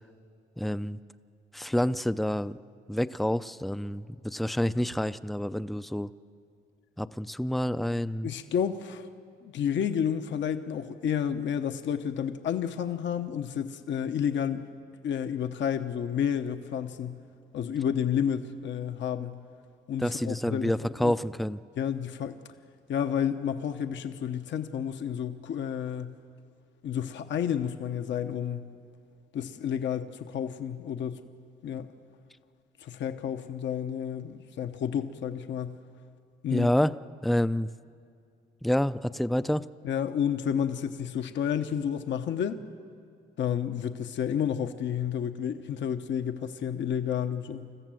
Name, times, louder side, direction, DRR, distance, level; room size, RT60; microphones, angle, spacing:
voice 1, 0.6-1.0 1.5-2.6 2.9-6.1 7.0-8.3 20.0-21.6 36.5-37.0 37.2-37.7 38.6-39.7, left 1 dB, ahead, 14 dB, 0.5 m, -28 dB
voice 2, 8.2-9.1 9.4-14.6 15.0-17.2 17.5-19.4 19.9-20.7 21.0-21.1 21.8-22.4 22.9-26.2 26.8-28.6 29.3-31.2 31.6-31.9 32.8-35.8 36.4-36.7 39.8-42.6 43.4-47.7, left 8 dB, 65° left, 8 dB, 0.9 m, -30 dB
28.0 x 14.5 x 7.7 m, 2.3 s
cardioid pair, 90°, 20 cm